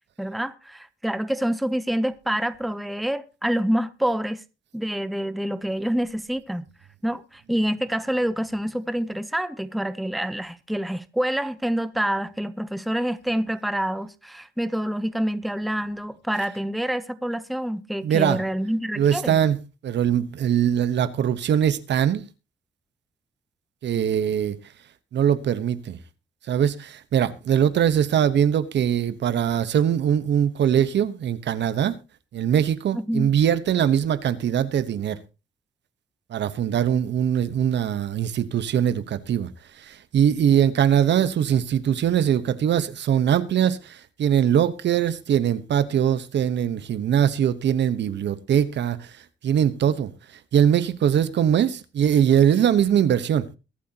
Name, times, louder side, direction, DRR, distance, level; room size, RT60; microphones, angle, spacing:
voice 1, 0.2-4.4 4.7-6.6 7.0-19.4 32.9-33.3, equal, ahead, 0.8 m, -27 dB
voice 2, 18.0-18.4 19.0-19.6 19.8-22.2 23.8-24.6 25.1-26.0 26.5-31.9 32.3-35.2 36.3-39.5 39.8-50.1 50.5-53.4, right 9 dB, 65° right, 1.1 m, -22 dB
22.5 x 8.5 x 2.9 m
cardioid pair, 90°, 20 cm